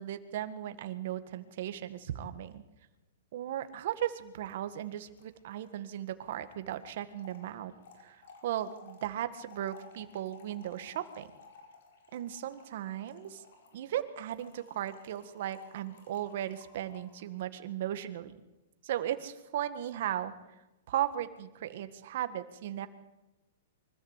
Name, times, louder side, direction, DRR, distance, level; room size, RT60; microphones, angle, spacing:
voice 1, 0.0-2.6 3.3-7.7 8.0-11.3 12.1-13.4 13.7-18.4 18.8-20.3 20.9-22.9, right 11 dB, 60° right, 10 dB, 1.7 m, -36 dB
Trickle dribble / Fill (with liquid), 3.6-3.7 3.9-4.0 4.2-17.3, left 4 dB, 70° left, 5.4 m, -57 dB
24.0 x 14.5 x 8.3 m, 1.0 s
hypercardioid pair, 150°, 0 cm